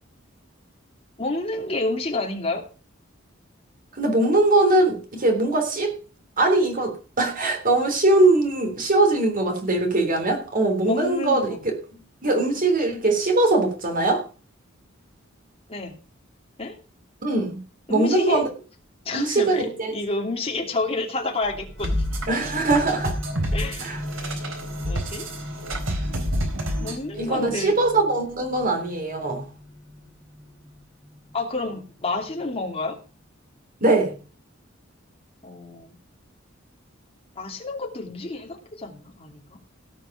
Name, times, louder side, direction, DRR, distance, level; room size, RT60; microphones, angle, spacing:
voice 1, 1.2-2.6 10.8-11.6 15.7-16.0 16.6-16.7 17.9-18.4 19.0-19.7 19.9-22.0 23.5-23.9 24.8-25.3 26.8-27.8 31.3-33.0 35.4-35.9 37.4-39.5, left 2 dB, 30° left, 2.8 m, -29 dB
voice 2, 4.0-5.9 6.4-11.6 12.2-14.2 17.2-17.6 17.9-18.4 19.1-19.9 22.3-23.2 23.8-24.0 27.1-29.4 33.8-34.1, right 2 dB, 45° right, 3.2 m, -21 dB
sound 1, 21.4-32.8, left 1 dB, ahead, 3.7 m, -39 dB
sound 2, 21.8-27.0, equal, 85° right, 4.2 m, -28 dB
17.5 x 6.3 x 5.9 m
head